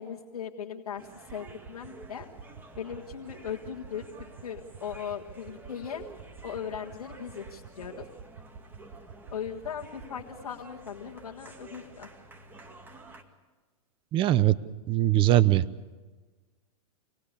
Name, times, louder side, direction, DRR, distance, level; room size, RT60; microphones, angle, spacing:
voice 1, 0.0-2.3 2.8-4.0 4.4-6.0 6.4-8.0 9.3-12.1, left 8 dB, 90° left, -3 dB, 1.8 m, -38 dB
sound 1, 1.0-13.2, right 2 dB, 10° right, 2.2 m, -50 dB
sound 2, 1.2-10.3, right 6 dB, 50° right, 5.5 m, -50 dB
voice 2, 14.1-14.5 14.9-15.6, right 14 dB, 25° right, 13 dB, 0.7 m, -21 dB
26.5 x 19.5 x 6.8 m, 1.3 s
hypercardioid pair, 130°, 19 cm